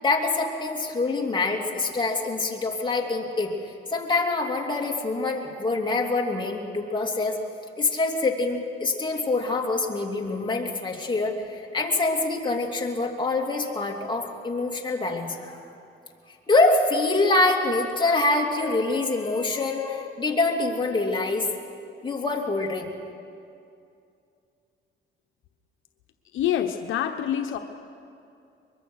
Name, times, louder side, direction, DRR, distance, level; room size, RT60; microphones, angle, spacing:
voice 1, 0.0-3.5 3.9-7.4 7.8-15.7 16.5-21.5 22.0-22.9, left 3 dB, 25° left, 0 dB, 3.1 m, -25 dB
voice 2, 26.3-27.6, left 10 dB, 80° left, 6 dB, 1.0 m, -26 dB
23.5 x 22.0 x 6.5 m, 2.5 s
cardioid pair, 90°, 20 cm